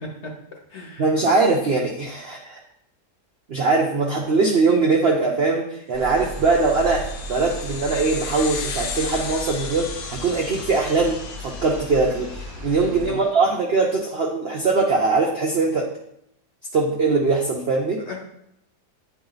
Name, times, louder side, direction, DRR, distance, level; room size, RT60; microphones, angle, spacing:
voice 1, 0.0-1.1 12.9-13.2 18.1-18.2, left 2 dB, 50° left, 1 dB, 1.0 m, -36 dB
voice 2, 1.0-2.6 3.5-15.9 16.7-18.0, right 3 dB, 60° right, 0 dB, 0.6 m, -21 dB
sound 1, 5.9-13.1, right 1 dB, 35° right, 1.2 m, -35 dB
sound 2, 6.1-12.9, left 6 dB, 85° left, 1.3 m, -36 dB
8.4 x 3.2 x 3.9 m, 0.76 s
omnidirectional pair, 1.8 m